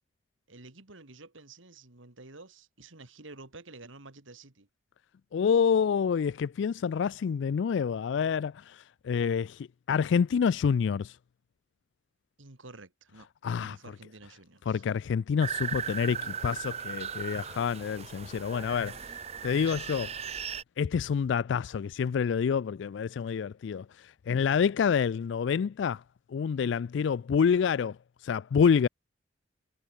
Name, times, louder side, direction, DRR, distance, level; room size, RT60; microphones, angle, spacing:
voice 1, 0.5-4.7 12.4-13.3 13.6-14.8, right 3 dB, 90° right, 2.6 m, -50 dB
voice 2, 5.3-11.2 13.4-13.8 14.7-19.0 19.4-20.2 20.8-26.0 26.3-28.0 28.2-28.9, left 6 dB, 70° left, 0.3 m, -27 dB
sound 1, 15.4-20.6, right 7 dB, 30° right, 0.8 m, -37 dB
head